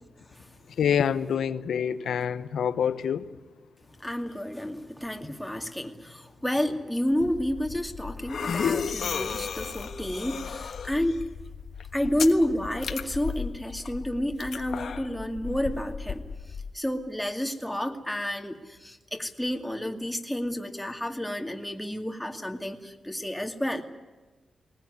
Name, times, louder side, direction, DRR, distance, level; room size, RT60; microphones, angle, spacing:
voice 1, 0.8-3.3, left 8 dB, 90° left, 13 dB, 1.0 m, -26 dB
voice 2, 4.0-11.2 11.9-16.2 16.7-23.8, equal, 5° left, 4 dB, 2.3 m, -30 dB
sound 1, 7.2-16.7, left 6 dB, 70° left, 1.3 m, -34 dB
20.0 x 20.0 x 9.8 m, 1.3 s
cardioid pair, 85°, 0 cm